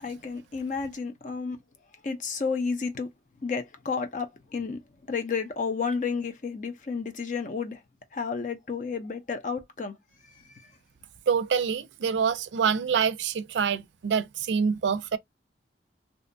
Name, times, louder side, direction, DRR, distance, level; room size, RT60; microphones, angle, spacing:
voice 1, 0.0-1.6 2.0-3.1 3.4-4.8 5.1-7.8 8.1-10.0 10.3-10.7, left 5 dB, 45° left, 0.5 m, -31 dB
voice 2, 11.3-15.2, right 6 dB, 85° right, 0.4 m, -26 dB
2.7 x 2.1 x 2.5 m
head